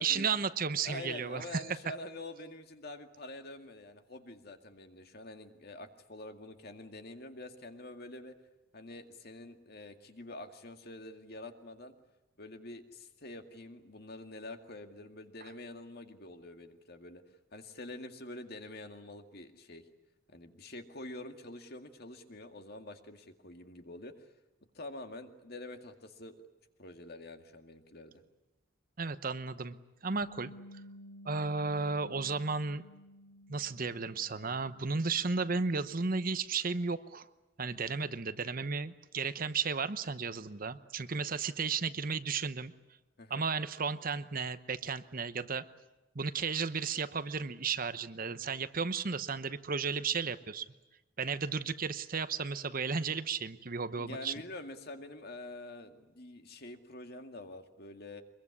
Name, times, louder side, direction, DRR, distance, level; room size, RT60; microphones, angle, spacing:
voice 1, 0.0-1.6 29.0-29.8 30.0-30.5 31.2-32.8 33.5-37.3 37.6-42.7 43.3-45.6 46.1-50.7 51.2-54.3, right 5 dB, 45° right, 12 dB, 0.9 m, -34 dB
voice 2, 0.8-8.3 8.7-12.0 12.4-17.2 17.5-19.8 20.3-24.3 24.7-26.4 26.8-28.2 43.2-43.4 53.9-58.2, left 2 dB, 50° left, 6 dB, 2.1 m, -46 dB
Bass guitar, 30.2-36.5, left 1 dB, 80° left, 3.1 m, -54 dB
24.0 x 22.5 x 9.8 m, 1.0 s
head